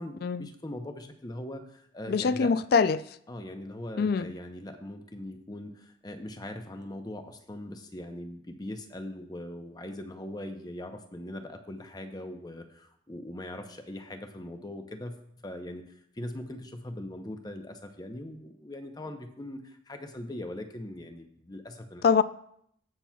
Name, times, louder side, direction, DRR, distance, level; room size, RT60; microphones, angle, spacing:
voice 1, 0.0-2.6 3.3-22.2, left 1 dB, 20° left, 0.7 m, -41 dB
voice 2, 2.1-3.0 4.0-4.3 22.0-22.2, left 5 dB, 55° left, 0.3 m, -24 dB
17.0 x 6.0 x 2.3 m
head